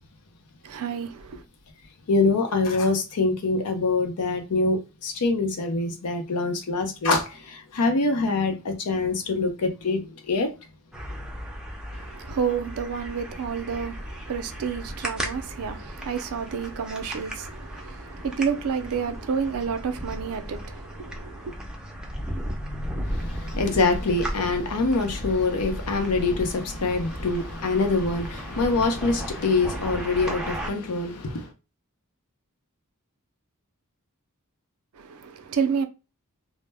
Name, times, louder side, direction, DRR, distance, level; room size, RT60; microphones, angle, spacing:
voice 1, 0.6-1.4 11.9-21.5 35.0-35.9, right 6 dB, 70° right, 0.4 m, -30 dB
voice 2, 2.1-10.5 23.1-31.5, left 3 dB, 90° left, 0.6 m, -25 dB
sound 1, 10.9-30.7, equal, 5° right, 0.4 m, -35 dB
2.1 x 2.0 x 3.3 m
head